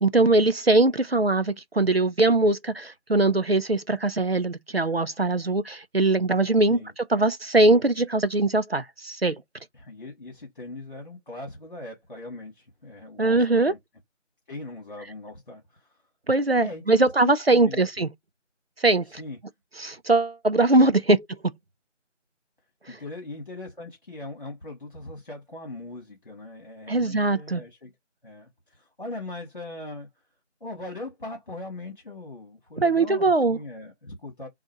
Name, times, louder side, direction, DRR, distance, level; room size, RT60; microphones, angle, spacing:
voice 1, 0.0-9.4 13.2-13.7 16.3-18.1 18.8-19.2 19.8-21.2 21.4-21.5 26.9-27.6 32.8-33.6, right 2 dB, 55° right, 0.6 m, -21 dB
voice 2, 9.7-13.8 14.5-16.0 16.6-18.1 19.1-19.4 20.8-21.0 22.9-27.9 28.2-30.1 30.6-34.5, left 2 dB, 45° left, 2.0 m, -40 dB
3.9 x 2.5 x 4.4 m
figure-of-eight pair, 175°, 37 cm